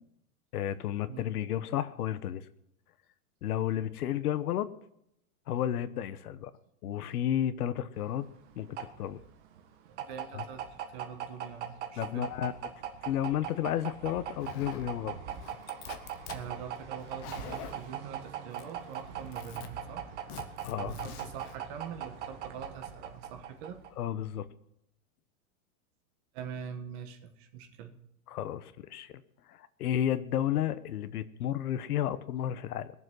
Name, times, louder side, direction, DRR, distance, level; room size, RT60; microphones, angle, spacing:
voice 1, 0.5-2.4 3.4-4.7 5.5-6.5 6.8-8.3 8.6-9.2 10.3-10.4 12.0-12.5 13.0-15.2 20.6-20.9 24.0-24.5 28.3-29.1 29.5-32.9, left 11 dB, 85° left, 14 dB, 1.1 m, -32 dB
sound 1, 8.0-24.0, right 9 dB, 50° right, 1.6 m, -41 dB
voice 2, 9.9-12.3 16.3-20.0 20.8-23.8 26.3-27.9, right 7 dB, 35° right, 6 dB, 1.5 m, -44 dB
Zipper (clothing), 14.4-14.9 15.3-16.4 17.0-17.9 18.5-18.9 19.2-19.7 20.3-21.5, left 8 dB, 25° left, 0.9 m, -45 dB
21.0 x 7.4 x 6.2 m, 0.78 s
supercardioid pair, 175°, 44 cm